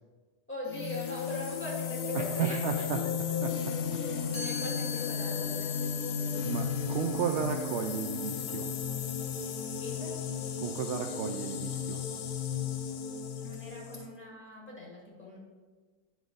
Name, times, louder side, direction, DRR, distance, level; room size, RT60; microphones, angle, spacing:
voice 1, 0.5-3.0 3.4-3.5 3.9-6.6 9.8-10.2 13.4-15.4, left 1 dB, 10° left, -5 dB, 1.9 m, -42 dB
sound 1, 0.6-14.1, left 7 dB, 80° left, 1.2 m, -34 dB
voice 2, 2.1-3.0 3.4-3.5 6.4-8.7 10.6-12.0, right 7 dB, 70° right, 4 dB, 0.7 m, -33 dB
Chime, 4.3-10.2, left 4 dB, 25° left, 2.3 m, -46 dB
9.5 x 5.1 x 3.9 m, 1.4 s
omnidirectional pair, 1.6 m